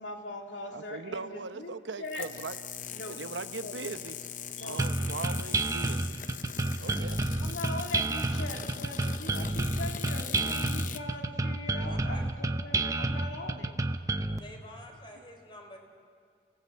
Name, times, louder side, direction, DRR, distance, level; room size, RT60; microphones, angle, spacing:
voice 1, 0.0-2.3 2.9-3.2 3.6-3.8 4.5-4.8 7.4-13.8, left 2 dB, 90° left, 2 dB, 2.6 m, -41 dB
voice 2, 0.7-2.5 3.1-4.2 4.6-6.2 6.8-7.2, right 4 dB, 90° right, 11 dB, 0.9 m, -39 dB
sound 1, 2.0-11.0, left 8 dB, 45° left, 0.7 m, -41 dB
sound 2, 4.8-14.4, right 2 dB, 20° right, 0.7 m, -30 dB
voice 3, 11.9-12.3 14.3-15.8, left 1 dB, 25° left, 3 dB, 3.5 m, -48 dB
29.5 x 18.0 x 7.7 m, 2.3 s
head